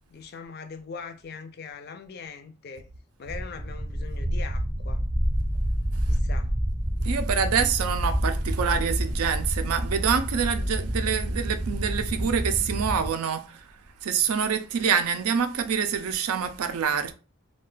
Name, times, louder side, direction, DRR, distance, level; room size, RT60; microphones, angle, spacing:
voice 1, 0.1-2.9 3.2-5.0 6.1-6.5, left 5 dB, 45° left, 0.4 m, -41 dB
sound 1, 3.3-13.1, equal, 25° right, 0.5 m, -28 dB
voice 2, 7.0-13.6 14.0-17.1, right 7 dB, 85° right, 0.4 m, -26 dB
2.4 x 2.2 x 3.7 m
head